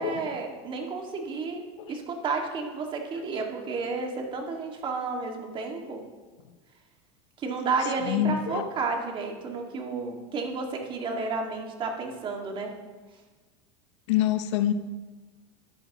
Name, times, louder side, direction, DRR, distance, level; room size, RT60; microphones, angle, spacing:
voice 1, 0.0-1.6 1.9-6.0 7.4-12.7, right 4 dB, 35° right, 2 dB, 1.9 m, -31 dB
voice 2, 8.0-8.7 14.1-14.7, left 11 dB, 80° left, 11 dB, 0.7 m, -26 dB
13.5 x 9.9 x 3.0 m, 1.3 s
supercardioid pair, 125°, 15 cm